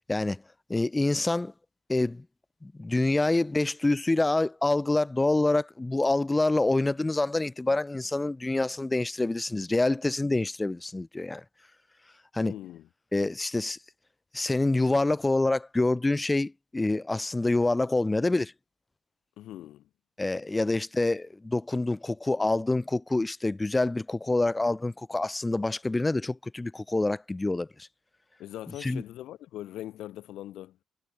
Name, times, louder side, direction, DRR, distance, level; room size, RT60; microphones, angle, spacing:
voice 1, 0.1-0.4 0.7-1.5 1.9-2.2 2.6-11.4 12.3-12.5 13.1-13.8 14.3-18.5 20.2-27.7 28.8-29.0, left 2 dB, 15° left, 0.9 m, -26 dB
voice 2, 12.4-12.9 19.4-19.9 28.4-30.8, left 13 dB, 85° left, 4.0 m, -41 dB
cardioid pair, 90°, 0 cm